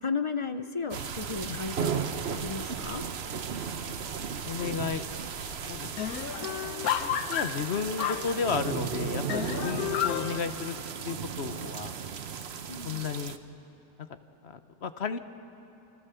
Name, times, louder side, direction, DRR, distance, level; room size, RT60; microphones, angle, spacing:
voice 1, 0.0-2.0 2.3-3.0 12.7-13.0, left 4 dB, 35° left, 9 dB, 0.5 m, -34 dB
sound 1, 0.9-13.4, right 7 dB, 50° right, 1.0 m, -35 dB
voice 2, 3.7-4.1 4.4-5.0 5.4-5.9 6.2-6.3 6.6-6.7 7.0-10.8 11.0-11.9 12.8-13.4 14.4-15.2, left 6 dB, 50° left, 10 dB, 1.0 m, -33 dB
sound 2, 4.6-5.0 5.3-5.4 5.7-8.8 9.3-10.4, left 10 dB, 80° left, 1.3 m, -32 dB
27.5 x 26.5 x 6.9 m, 2.9 s
omnidirectional pair, 1.6 m